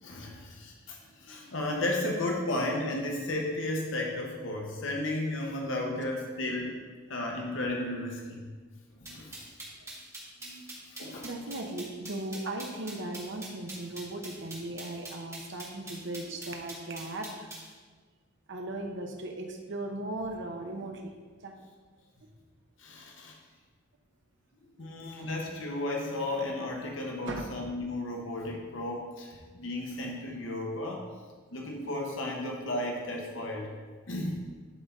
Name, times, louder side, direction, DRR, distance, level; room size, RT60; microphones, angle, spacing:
voice 1, 0.0-6.8 7.1-8.4 9.0-9.4 11.0-11.3 22.8-23.4 24.8-31.0 31.5-33.7 34.1-34.4, left 1 dB, 75° left, 0 dB, 1.1 m, -34 dB
sound 1, 9.1-17.7, right 2 dB, 15° right, 1.6 m, -43 dB
voice 2, 11.2-17.5 18.5-21.1 21.4-21.6 24.8-25.2 27.3-27.5, right 1 dB, 65° right, 3 dB, 0.9 m, -38 dB
11.5 x 3.9 x 4.2 m, 1.4 s
head